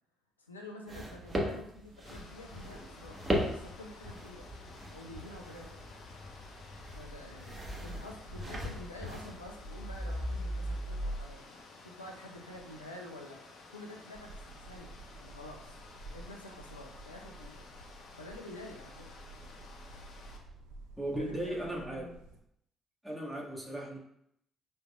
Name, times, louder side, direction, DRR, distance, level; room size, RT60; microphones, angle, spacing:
voice 1, 0.4-4.5 4.9-5.8 6.9-13.4 13.7-15.8 16.1-17.6 18.2-19.2 21.1-22.2, left 1 dB, 85° left, 1 dB, 0.5 m, -48 dB
sound 1, 0.9-10.1, equal, 25° right, 1.1 m, -39 dB
sound 2, 2.1-20.4, equal, 60° left, 0.8 m, -45 dB
sound 3, 14.1-22.4, right 2 dB, 75° right, 0.6 m, -52 dB
voice 2, 21.0-22.1 23.0-24.0, right 1 dB, 10° right, -4 dB, 1.5 m, -36 dB
5.2 x 4.4 x 2.2 m, 0.75 s
figure-of-eight pair, 45°, 0 cm